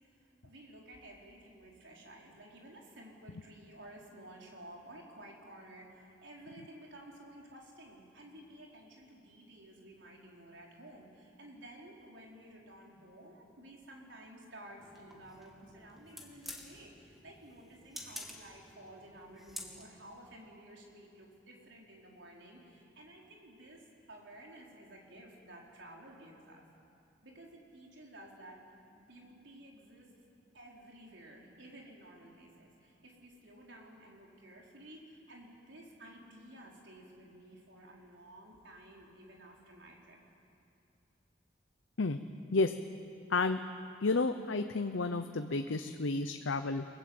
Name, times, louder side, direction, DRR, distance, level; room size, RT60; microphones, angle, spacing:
voice 1, 0.2-23.8 24.1-26.6 27.2-28.6 28.9-30.1 30.5-40.2, right 1 dB, 70° right, -2 dB, 4.4 m, -53 dB
sound 1, 14.8-20.1, left 1 dB, ahead, 2.3 m, -50 dB
voice 2, 43.3-43.6 44.0-46.8, left 3 dB, 85° left, 8 dB, 0.8 m, -31 dB
29.0 x 19.5 x 7.9 m, 2.7 s
head